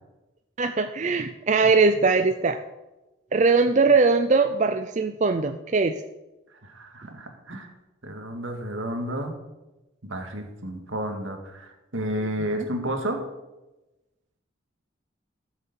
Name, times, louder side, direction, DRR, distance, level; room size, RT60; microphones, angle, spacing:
voice 1, 0.6-2.6 3.3-5.9, right 4 dB, 35° right, 8 dB, 0.5 m, -21 dB
voice 2, 6.6-7.7 8.0-9.3 10.0-13.2, right 1 dB, 75° right, 4 dB, 2.1 m, -31 dB
13.0 x 7.3 x 7.0 m, 1.0 s
head